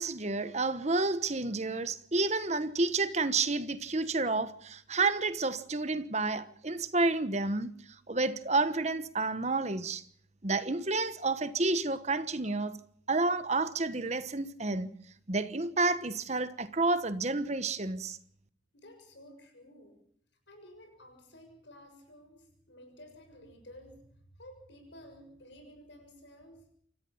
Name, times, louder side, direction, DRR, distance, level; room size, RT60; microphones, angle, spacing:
voice 1, 0.0-7.7 8.1-10.0 10.4-12.8 13.1-14.9 15.3-18.2, right 3 dB, 35° right, 1.2 m, -30 dB
voice 2, 18.7-20.0 20.5-26.7, equal, 65° left, 6.9 m, -53 dB
27.5 x 14.5 x 7.2 m
head